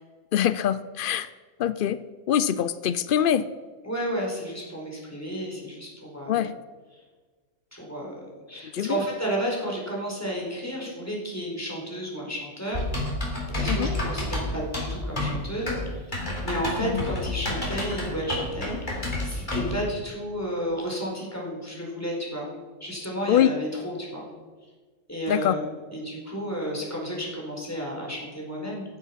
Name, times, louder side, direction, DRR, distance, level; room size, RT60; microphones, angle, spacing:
voice 1, 0.3-1.3 1.6-2.0 2.3-3.5 6.3-6.5 8.7-9.0 13.7-13.9 16.8-17.0 23.3-23.6 25.3-25.6, left 10 dB, 85° left, 14 dB, 0.4 m, -24 dB
voice 2, 3.8-6.4 7.7-8.2 8.5-12.9 13.6-15.7 16.4-22.5 22.8-24.2 25.1-25.6 25.9-28.8, equal, 10° left, -2 dB, 4.3 m, -32 dB
Typing, 12.7-19.8, left 1 dB, 35° left, 3.7 m, -29 dB
14.5 x 11.0 x 5.7 m, 1.4 s
omnidirectional pair, 1.5 m